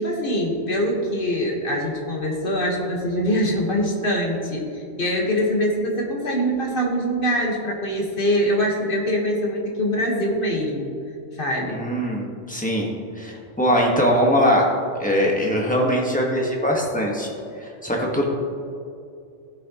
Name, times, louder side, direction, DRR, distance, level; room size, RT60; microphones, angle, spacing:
voice 1, 0.0-10.9 11.3-11.8, equal, 45° left, -1 dB, 1.7 m, -23 dB
voice 2, 11.7-12.9 13.1-14.7 15.0-18.2, equal, 5° left, -2 dB, 1.4 m, -21 dB
16.5 x 6.2 x 3.0 m, 2.5 s
omnidirectional pair, 1.3 m